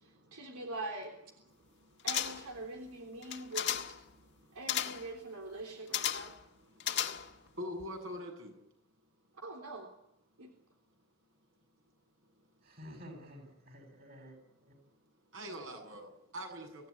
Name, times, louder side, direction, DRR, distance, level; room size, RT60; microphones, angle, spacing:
voice 1, 0.0-1.1 2.0-3.7 4.5-6.3 9.4-9.9 10.4-10.5, right 2 dB, 85° right, 3 dB, 3.6 m, -43 dB
sound 1, 2.1-2.6 3.2-4.0 4.7-5.1 5.9-6.4 6.8-7.5 7.8-7.9, left 10 dB, 50° left, 1.7 m, -34 dB
voice 2, 7.6-8.5 15.3-16.9, equal, 60° right, 3 dB, 7.8 m, -42 dB
voice 3, 12.6-14.7, equal, 45° right, 4 dB, 7.6 m, -51 dB
26.0 x 16.5 x 9.9 m, 0.87 s
head